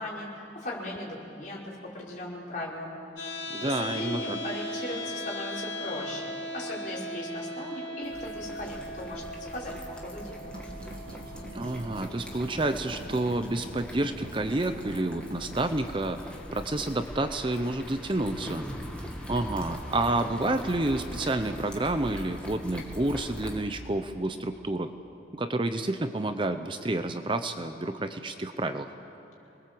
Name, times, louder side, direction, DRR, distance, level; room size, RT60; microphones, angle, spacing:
voice 1, 0.0-1.6 1.9-3.0 3.6-9.2 9.5-10.6, left 1 dB, 45° left, -5 dB, 5.5 m, -38 dB
sound 1, 3.2-15.2, left 1 dB, 85° left, 3.3 m, -39 dB
voice 2, 3.5-4.4 11.5-16.2 16.5-18.7 19.0-24.9 25.3-28.9, right 2 dB, 25° right, 8 dB, 0.7 m, -29 dB
sound 2, 8.0-23.6, equal, 5° left, 2.1 m, -42 dB
sound 3, 10.4-15.6, right 1 dB, 50° right, 2.5 m, -45 dB
28.0 x 20.5 x 7.8 m, 2.9 s
head